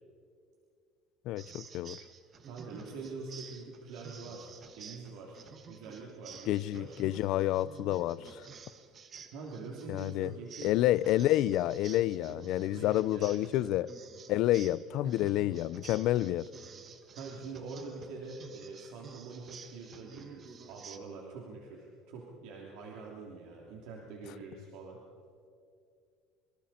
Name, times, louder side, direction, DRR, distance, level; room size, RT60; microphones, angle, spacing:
voice 1, 1.3-2.0 6.5-8.5 9.9-10.3 10.6-13.9 14.3-16.5, left 14 dB, 55° left, 0.5 m, -29 dB
sound 1, 1.4-21.0, right 6 dB, 30° right, 1.3 m, -51 dB
voice 2, 2.4-5.4 5.7-7.0 9.3-10.8 12.6-13.8 15.0-15.4 17.1-25.0, right 4 dB, 70° right, 3.1 m, -45 dB
26.5 x 25.0 x 4.4 m
cardioid pair, 160°, 0 cm